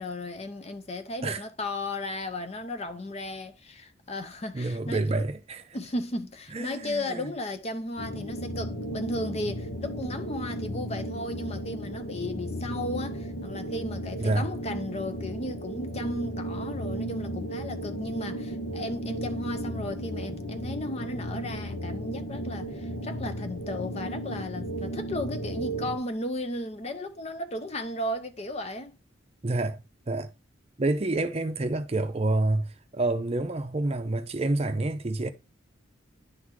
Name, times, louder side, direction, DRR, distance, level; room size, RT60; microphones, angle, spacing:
voice 1, 0.0-5.2 5.7-29.0, left 1 dB, 35° left, 0.6 m, -35 dB
voice 2, 4.5-5.7 6.5-7.3 14.2-14.5 29.4-30.3 30.8-35.3, right 2 dB, 30° right, 0.6 m, -28 dB
sound 1, 8.0-26.0, right 1 dB, 80° left, 1.3 m, -35 dB
10.5 x 4.0 x 3.1 m
head